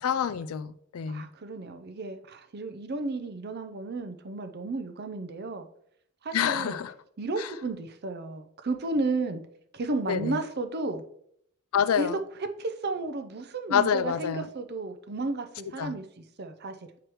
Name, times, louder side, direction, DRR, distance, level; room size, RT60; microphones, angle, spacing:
voice 1, 0.0-1.3 6.3-6.9 7.4-7.5 10.1-10.4 11.7-12.2 13.7-14.5 15.8-15.9, left 8 dB, 80° left, 0.4 m, -27 dB
voice 2, 1.1-5.7 6.2-6.8 7.2-9.4 9.7-11.0 12.0-12.1 12.6-16.7, right 3 dB, 50° right, 0.6 m, -33 dB
7.7 x 4.8 x 3.0 m
head